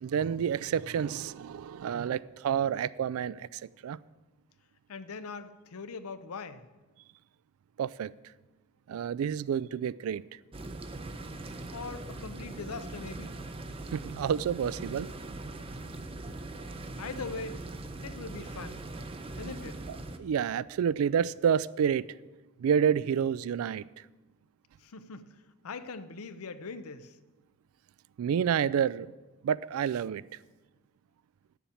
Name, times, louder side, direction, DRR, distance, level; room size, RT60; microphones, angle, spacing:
voice 1, 0.0-4.0 7.8-8.1 8.9-10.2 13.9-15.1 20.2-22.1 22.6-23.9 28.2-29.1 29.4-30.2, right 8 dB, 75° right, 20 dB, 0.3 m, -29 dB
voice 2, 4.9-6.7 11.7-13.4 17.0-17.6 18.0-18.8 19.4-19.8 24.8-27.2, left 4 dB, 85° left, 12 dB, 0.6 m, -41 dB
sound 1, 10.5-20.2, right 2 dB, 25° right, 0.6 m, -41 dB
9.2 x 7.1 x 7.1 m, 1.2 s
head